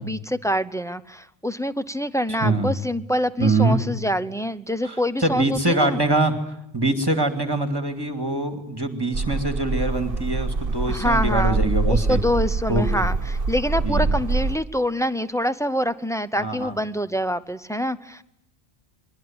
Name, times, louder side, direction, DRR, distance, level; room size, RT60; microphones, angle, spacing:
voice 1, 0.0-6.0 10.9-11.6 11.9-18.2, equal, 5° left, 10 dB, 0.9 m, -25 dB
voice 2, 2.4-2.7 3.4-3.8 4.8-5.0 5.2-6.3 6.7-12.2 12.7-13.1 13.8-14.1 16.4-16.7, right 2 dB, 20° right, 7 dB, 2.6 m, -23 dB
sound 1, 9.1-14.6, right 3 dB, 60° right, 1.4 m, -24 dB
27.5 x 22.0 x 8.9 m, 0.77 s
omnidirectional pair, 1.0 m